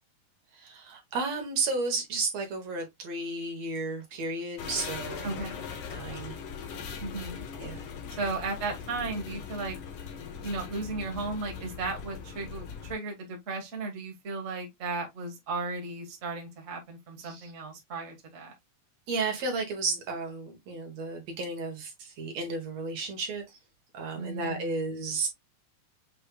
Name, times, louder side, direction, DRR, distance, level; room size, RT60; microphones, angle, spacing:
voice 1, 0.5-5.4 5.9-6.4 7.6-7.8 17.2-17.5 19.1-23.6 23.9-25.3, right 3 dB, 65° right, 2.3 m, -33 dB
sound 1, 4.6-12.9, left 6 dB, 60° left, 1.8 m, -40 dB
voice 2, 5.2-5.6 7.0-7.4 8.2-9.7 10.4-18.5 24.1-24.9, right 3 dB, 35° right, 1.3 m, -35 dB
6.7 x 3.2 x 2.2 m
omnidirectional pair, 3.5 m